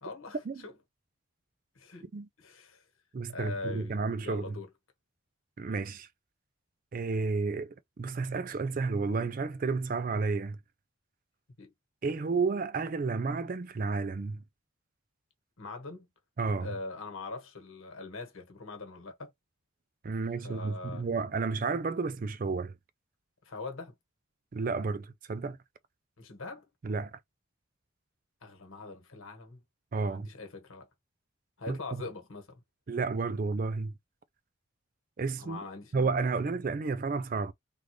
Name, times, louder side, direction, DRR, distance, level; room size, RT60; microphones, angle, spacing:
voice 1, 0.0-0.8 1.7-2.1 2.4-2.8 3.3-4.7 11.6-11.7 15.6-16.1 16.6-19.3 20.4-21.1 23.4-23.9 26.2-26.6 28.4-29.6 30.0-30.9 31.6-32.6 35.4-35.9, left 3 dB, 80° left, 1.4 m, -42 dB
voice 2, 3.1-4.6 5.6-6.1 6.9-10.6 12.0-14.4 16.4-16.7 20.0-22.7 24.5-25.6 26.8-27.2 29.9-30.3 31.7-31.8 32.9-33.9 35.2-35.6 35.9-37.5, right 4 dB, 40° right, 0.3 m, -31 dB
3.7 x 2.4 x 3.1 m
head